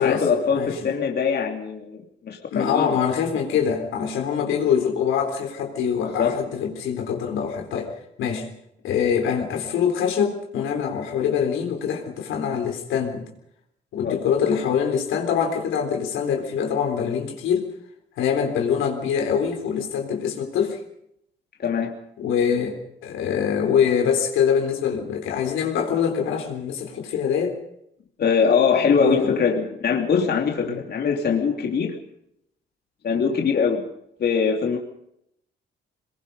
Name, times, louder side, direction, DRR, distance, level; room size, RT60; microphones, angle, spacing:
voice 1, 0.0-3.0 6.0-6.4 14.0-14.2 21.6-21.9 28.2-32.0 33.0-33.8 34.2-34.8, left 6 dB, 55° left, 1 dB, 3.0 m, -22 dB
voice 2, 2.5-7.9 8.2-8.5 8.8-13.2 13.9-17.7 18.2-20.8 22.2-27.6 29.0-29.4 30.6-30.8, left 7 dB, 85° left, 3 dB, 3.8 m, -24 dB
22.5 x 21.5 x 5.4 m, 0.76 s
cardioid pair, 90°, 20 cm